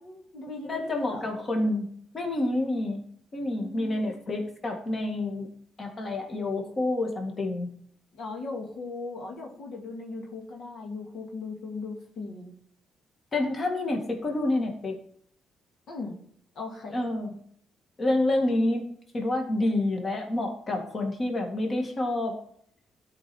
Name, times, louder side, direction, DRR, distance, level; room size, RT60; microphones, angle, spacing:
voice 1, 0.0-1.3 3.6-4.2 8.1-12.5 15.9-16.2 16.6-17.0, left 3 dB, 70° left, 0 dB, 2.0 m, -38 dB
voice 2, 0.6-3.0 3.3-5.5 5.8-7.7 13.3-15.0 16.9-17.3 18.0-18.9 19.1-22.4, left 2 dB, 40° left, 2 dB, 2.1 m, -28 dB
12.0 x 5.0 x 4.4 m, 0.63 s
cardioid pair, 90°, 0 cm